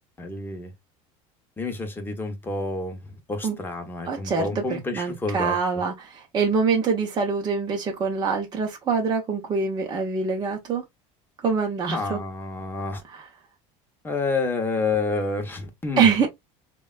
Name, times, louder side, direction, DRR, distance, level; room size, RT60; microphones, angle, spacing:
voice 1, 0.2-0.7 1.6-5.6 11.9-13.0 14.0-16.1, left 3 dB, 15° left, 0.8 m, -29 dB
voice 2, 4.1-10.8 11.4-12.2 13.1-13.3 16.0-16.3, right 5 dB, 25° right, 0.6 m, -24 dB
3.2 x 2.2 x 2.3 m
supercardioid pair, 120°, 16 cm